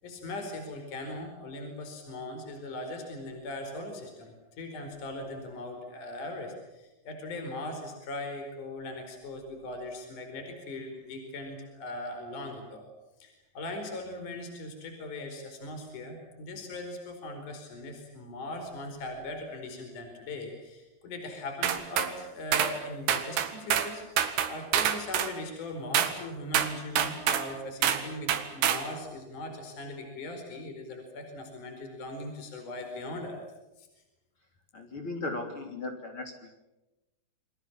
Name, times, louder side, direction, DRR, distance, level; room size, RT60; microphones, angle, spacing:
voice 1, 0.0-12.8 13.2-33.4 33.8-33.9, left 2 dB, 50° left, 5 dB, 6.0 m, -40 dB
sound 1, 21.6-22.1 22.5-22.8 23.1-23.9 24.2-25.3 25.9-26.2 26.5-27.5 27.8-28.0 28.3-28.9, right 9 dB, 90° right, 3.9 m, -26 dB
voice 2, 34.7-36.5, left 2 dB, 35° left, 4 dB, 3.9 m, -37 dB
29.0 x 24.5 x 7.4 m, 0.98 s
omnidirectional pair, 4.6 m